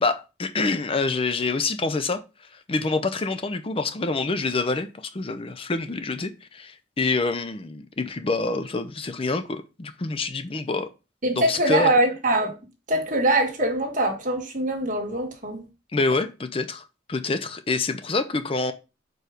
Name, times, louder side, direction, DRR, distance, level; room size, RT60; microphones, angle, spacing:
voice 1, 0.0-2.2 2.7-10.9 11.3-11.9 15.9-18.7, left 3 dB, 30° left, 0.5 m, -26 dB
voice 2, 11.2-12.5 12.9-15.7, right 1 dB, 45° right, 1.6 m, -23 dB
4.7 x 4.6 x 5.0 m
head